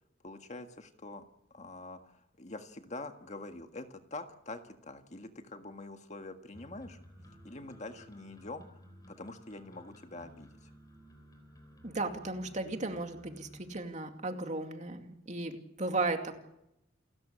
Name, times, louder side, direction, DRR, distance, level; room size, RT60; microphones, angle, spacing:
voice 1, 0.2-1.2 1.5-7.0 7.4-8.7 9.1-10.6, left 2 dB, 35° left, 6 dB, 1.7 m, -45 dB
sound 1, 6.5-13.8, equal, 20° left, 3.9 m, -55 dB
voice 2, 11.8-16.3, right 2 dB, 40° right, 5 dB, 2.5 m, -35 dB
29.0 x 13.5 x 8.7 m, 0.83 s
head